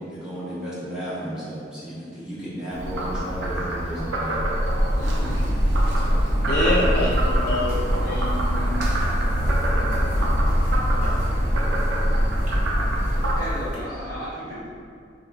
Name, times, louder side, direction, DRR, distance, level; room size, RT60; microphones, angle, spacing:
voice 1, 0.0-4.7 5.9-6.5, equal, 5° right, -11 dB, 0.6 m, -34 dB
Frog, 2.7-13.3, right 1 dB, 80° right, 0.4 m, -27 dB
sound 1, 4.4-13.8, equal, 45° right, 0.7 m, -24 dB
voice 2, 4.9-5.9 13.4-14.7, equal, 20° left, -10 dB, 1.0 m, -35 dB
voice 3, 6.3-8.7 11.0-11.1, left 1 dB, 55° left, -5 dB, 0.4 m, -26 dB
3.9 x 2.2 x 2.4 m, 2.4 s
head